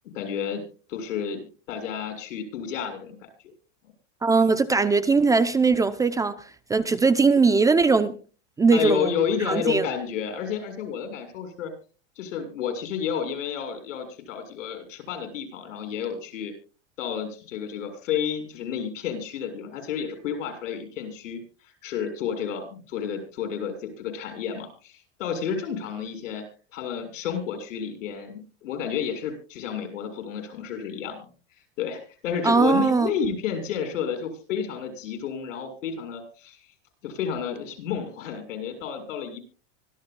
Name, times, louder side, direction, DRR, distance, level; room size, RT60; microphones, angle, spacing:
voice 1, 0.1-0.6 0.9-1.4 1.7-3.3 8.7-11.7 12.2-16.5 17.0-26.4 26.7-31.2 31.8-36.6 37.0-39.4, left 7 dB, 90° left, 7.0 m, -31 dB
voice 2, 4.2-8.2 8.6-9.1 9.5-9.9 32.4-33.1, right 4 dB, 10° right, 0.6 m, -20 dB
24.5 x 15.0 x 2.3 m
supercardioid pair, 155°, 37 cm